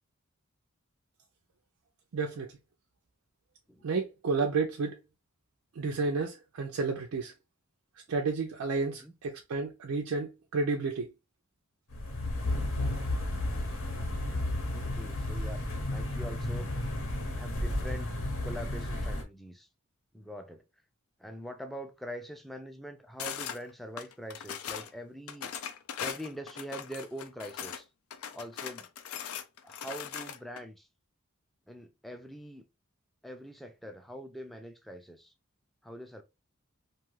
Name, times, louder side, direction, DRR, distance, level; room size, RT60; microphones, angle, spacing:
voice 1, 2.1-2.5 3.8-5.0 5.8-7.3 8.1-11.1, right 4 dB, 90° right, 0.4 m, -31 dB
sound 1, 11.9-19.2, left 1 dB, 70° left, 0.8 m, -33 dB
voice 2, 14.7-16.7 17.4-18.1 18.4-19.7 20.1-20.6 21.2-27.9 28.3-28.9 29.6-30.9 31.7-32.6 33.2-35.3 35.8-36.2, equal, ahead, 0.3 m, -43 dB
sound 2, 23.2-23.6 24.0-24.9 25.3-27.8 28.1-30.6, left 8 dB, 90° left, 0.4 m, -39 dB
2.6 x 2.4 x 3.0 m
head